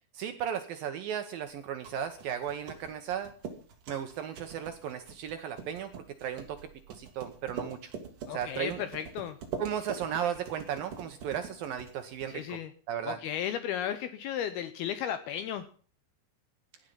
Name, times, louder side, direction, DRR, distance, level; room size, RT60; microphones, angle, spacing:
voice 1, 0.1-3.3 3.9-7.9 8.3-8.8 9.6-12.6 12.9-13.2, right 9 dB, 70° right, 8 dB, 2.3 m, -35 dB
sound 1, 1.5-12.6, right 5 dB, 50° right, 3.6 m, -44 dB
voice 2, 8.3-9.4 12.3-12.7 13.1-15.7, left 10 dB, 80° left, 12 dB, 2.3 m, -34 dB
17.0 x 10.5 x 5.6 m, 0.42 s
omnidirectional pair, 5.2 m